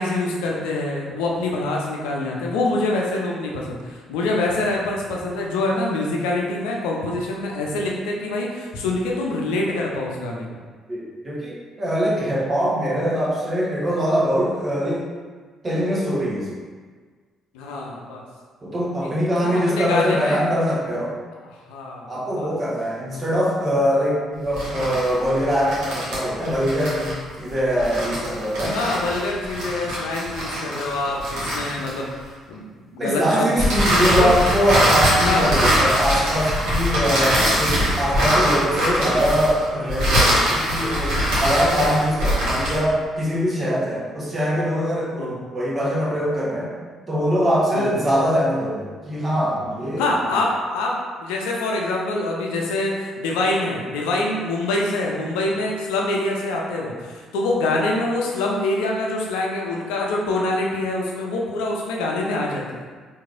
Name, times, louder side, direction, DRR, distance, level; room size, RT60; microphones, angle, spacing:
voice 1, 0.0-10.6 17.5-18.2 19.0-19.1 19.4-20.4 21.7-22.5 23.1-23.2 28.7-32.1 32.5-34.3 35.2-35.6 41.7-41.9 45.2-45.3 47.7-48.0 50.0-62.8, left 2 dB, 70° left, -1 dB, 0.5 m, -25 dB
voice 2, 10.9-15.0 15.6-16.5 18.6-21.1 22.1-28.8 33.0-46.7 47.1-50.4, equal, 30° right, -6 dB, 1.0 m, -22 dB
sound 1, 24.4-32.3 33.6-42.9, equal, 60° right, 1.2 m, -22 dB
4.6 x 2.7 x 2.5 m, 1.5 s
figure-of-eight pair, 45°, 0 cm